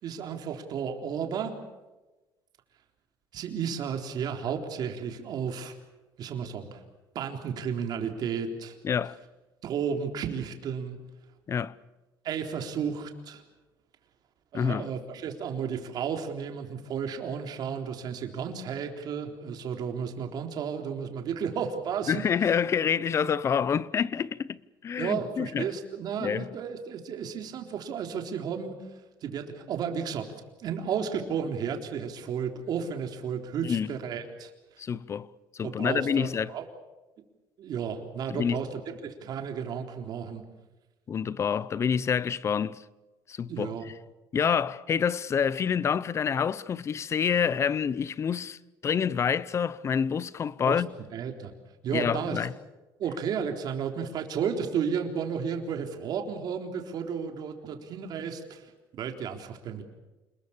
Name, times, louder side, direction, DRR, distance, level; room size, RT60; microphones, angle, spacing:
voice 1, 0.0-1.5 3.3-5.7 6.2-6.8 7.1-8.8 9.6-11.0 12.2-13.4 14.5-22.3 25.0-28.9 29.2-30.3 30.6-34.5 35.6-36.7 37.6-40.4 43.5-43.9 50.7-50.8 51.1-51.5 51.8-52.4 53.0-58.7 59.0-59.8, right 7 dB, 55° right, 3.8 m, -33 dB
voice 2, 8.8-9.2 11.5-11.7 14.5-14.9 22.1-25.7 26.2-26.5 33.6-33.9 34.8-36.5 38.3-38.6 41.1-42.8 43.3-43.9 44.3-50.9 51.9-52.5, left 7 dB, 35° left, 0.8 m, -27 dB
28.5 x 21.0 x 7.3 m
cardioid pair, 135°, 8 cm